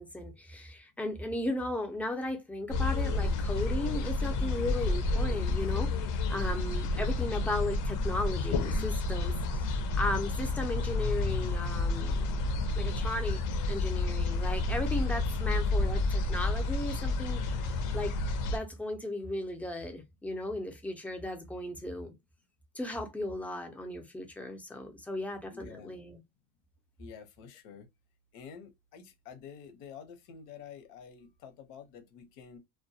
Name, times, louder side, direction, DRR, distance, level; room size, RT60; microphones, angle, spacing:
voice 1, 0.0-5.9 6.3-12.4 12.8-18.1 18.5-22.1 22.7-26.2, left 1 dB, 5° left, 0.4 m, -36 dB
sound 1, 2.7-18.6, left 2 dB, 55° left, 0.5 m, -30 dB
voice 2, 25.5-25.9 27.0-27.9 28.3-32.6, left 7 dB, 85° left, 0.8 m, -49 dB
2.2 x 2.1 x 2.7 m
cardioid pair, 130°, 38 cm